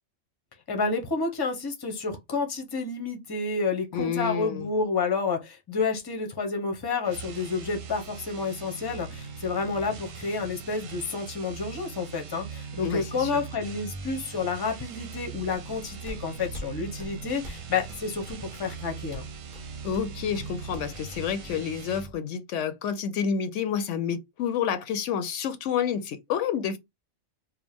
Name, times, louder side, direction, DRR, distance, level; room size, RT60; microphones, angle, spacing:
voice 1, 0.7-19.3, left 4 dB, 20° left, 0.7 m, -30 dB
voice 2, 3.9-4.7 12.8-13.4 19.8-26.8, left 7 dB, 75° left, 0.9 m, -29 dB
sound 1, 7.0-22.1, right 6 dB, 85° right, 1.1 m, -41 dB
sound 2, 15.3-21.6, left 2 dB, 45° right, 1.5 m, -46 dB
4.6 x 2.1 x 3.4 m
omnidirectional pair, 1.3 m